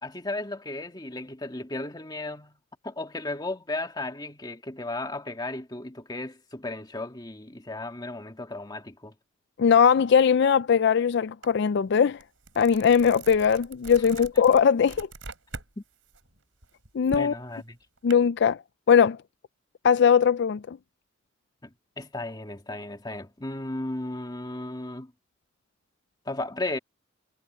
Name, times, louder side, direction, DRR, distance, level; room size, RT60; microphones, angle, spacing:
voice 1, 0.0-2.6 2.8-9.1 15.8-15.9 17.1-17.8 21.6-25.1 26.3-26.8, left 2 dB, 20° left, 1.9 m, -35 dB
voice 2, 9.6-12.2 12.6-15.1 16.9-17.3 18.0-18.6 18.9-19.2 19.8-20.8, left 7 dB, 60° left, 0.4 m, -20 dB
sound 1, 11.4-11.6 12.0-15.7 16.1-18.1, right 3 dB, 75° right, 4.5 m, -43 dB
head